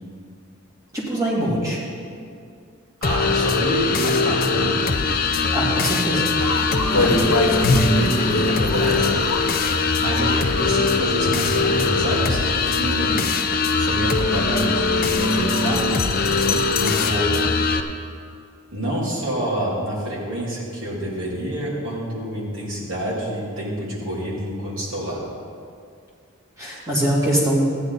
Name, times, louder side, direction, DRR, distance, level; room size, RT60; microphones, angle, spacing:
voice 1, 0.9-1.8 5.5-6.2 7.0-7.1 26.6-27.7, right 1 dB, 15° right, -7 dB, 2.6 m, -22 dB
sound 1, 3.0-17.8, left 4 dB, 40° left, 0.6 m, -21 dB
voice 2, 3.0-4.8 6.6-9.1 10.0-13.2 13.7-15.8 16.7-17.4 18.7-25.2, right 1 dB, 60° right, -6 dB, 3.0 m, -28 dB
sound 2, 6.4-17.1, left 2 dB, 80° left, 1.0 m, -27 dB
14.5 x 9.9 x 4.1 m, 2.3 s
head